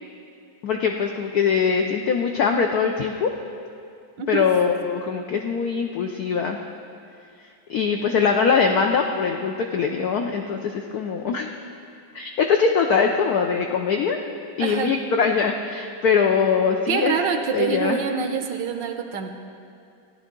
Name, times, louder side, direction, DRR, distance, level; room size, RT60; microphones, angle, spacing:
voice 1, 0.6-3.3 4.3-6.6 7.7-11.5 12.1-14.2 14.6-17.2 17.5-18.0, left 6 dB, 70° left, 3 dB, 0.9 m, -22 dB
voice 2, 14.6-14.9 16.9-19.3, right 7 dB, 70° right, 6 dB, 1.3 m, -25 dB
15.5 x 10.5 x 3.7 m, 2.4 s
omnidirectional pair, 2.2 m